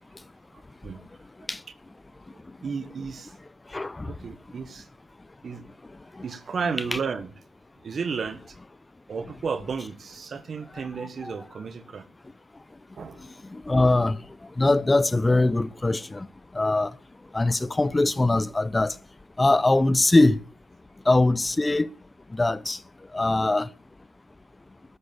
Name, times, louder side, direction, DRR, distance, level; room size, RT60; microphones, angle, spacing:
voice 1, 0.5-1.0 2.3-3.3 4.1-4.9 5.4-5.6 6.2-7.3 7.8-8.6 9.1-12.1 13.0-13.2, right 5 dB, 55° right, 1.6 m, -33 dB
voice 2, 3.7-4.1 11.2-11.3 13.5-14.2 14.6-16.3 16.5-16.9 17.3-18.9 19.4-20.4 21.1-21.9 22.3-22.8 23.1-23.7, left 2 dB, 25° left, 0.9 m, -22 dB
13.0 x 11.5 x 7.2 m
supercardioid pair, 45°, 0 cm